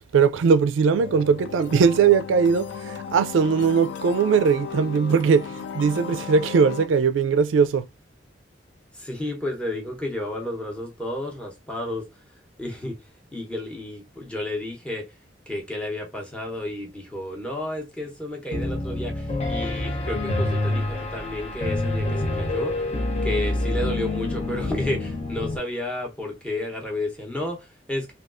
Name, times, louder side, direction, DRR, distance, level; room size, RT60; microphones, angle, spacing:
voice 1, 0.1-7.9, right 6 dB, 85° right, 0.3 m, -20 dB
sound 1, 1.0-6.9, left 6 dB, 75° left, 0.4 m, -35 dB
voice 2, 8.9-12.1 12.6-13.0 13.3-15.1 15.5-22.8 23.2-28.1, left 1 dB, 5° left, 0.8 m, -31 dB
Piano, 18.5-25.6, left 2 dB, 35° left, 0.7 m, -27 dB
3.4 x 2.3 x 2.4 m
head